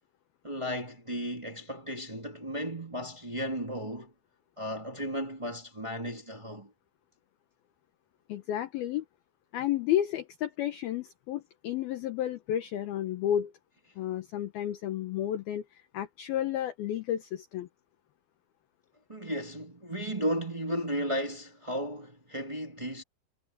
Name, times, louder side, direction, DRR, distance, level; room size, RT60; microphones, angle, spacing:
voice 1, 0.4-4.1 4.6-6.7 19.1-23.0, equal, 50° right, 0.3 m, -34 dB
voice 2, 8.3-9.0 9.5-13.5 14.0-17.7, left 11 dB, 70° left, 2.6 m, -32 dB
omnidirectional pair, 5.4 m